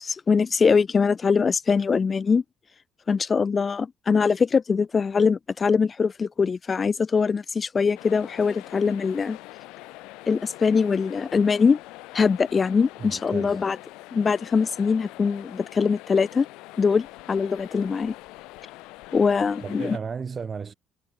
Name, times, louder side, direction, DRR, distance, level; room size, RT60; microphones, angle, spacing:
voice 1, 0.0-2.4 3.1-9.4 10.3-11.8 12.1-13.8 14.1-16.5 16.8-18.1 19.1-20.0, left 5 dB, 40° left, 0.6 m, -22 dB
sound 1, 7.9-20.0, left 21 dB, 80° left, 3.2 m, -44 dB
voice 2, 13.0-13.6 19.6-20.7, right 6 dB, 40° right, 3.7 m, -34 dB
supercardioid pair, 70°, 0 cm